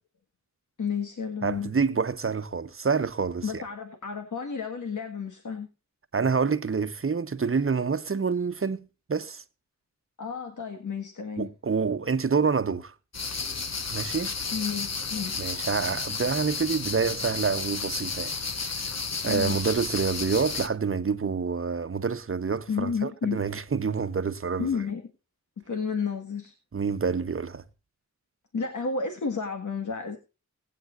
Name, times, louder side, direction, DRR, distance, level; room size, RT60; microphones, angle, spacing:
voice 1, 0.8-1.7 3.4-5.7 10.2-11.5 14.5-15.5 19.3-19.6 22.7-23.4 24.6-25.0 25.6-26.5 28.5-30.2, left 5 dB, 85° left, 1.7 m, -31 dB
voice 2, 1.4-3.6 6.1-9.4 11.4-12.9 13.9-14.3 15.4-18.4 19.2-24.8 26.7-27.6, right 5 dB, 45° right, 1.0 m, -27 dB
sound 1, 13.1-20.7, left 4 dB, 60° left, 1.3 m, -32 dB
19.0 x 8.8 x 2.5 m
wide cardioid pair, 55°, 30 cm